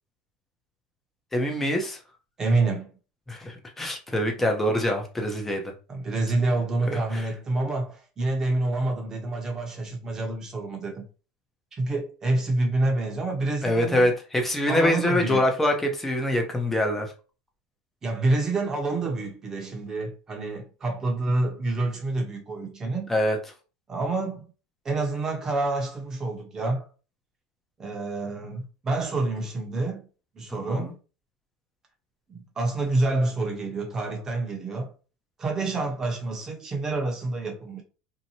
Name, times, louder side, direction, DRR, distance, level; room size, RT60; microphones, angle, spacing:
voice 1, 1.3-2.0 3.3-5.6 6.9-7.3 13.6-17.1 23.1-23.4 30.5-30.9, left 1 dB, 10° left, 0.7 m, -25 dB
voice 2, 2.4-2.9 5.9-11.0 11.8-14.1 14.7-15.4 18.0-23.2 23.9-24.4 24.8-26.9 27.8-30.1 30.3-31.0 32.3-34.9 35.4-37.8, right 2 dB, 25° right, 0.9 m, -27 dB
2.8 x 2.2 x 2.8 m
supercardioid pair, 125°, 2 cm